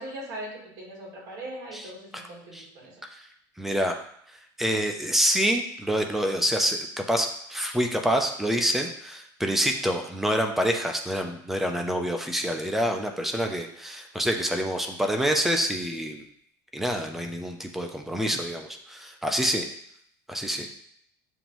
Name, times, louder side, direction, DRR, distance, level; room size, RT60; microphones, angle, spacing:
voice 1, 0.0-3.0, right 1 dB, 40° right, -3 dB, 1.5 m, -40 dB
voice 2, 3.6-4.0 4.6-16.2 16.7-19.7 20.3-20.7, equal, 5° right, 3 dB, 0.3 m, -27 dB
7.0 x 2.6 x 2.9 m, 0.68 s
cardioid pair, 175°, 10 cm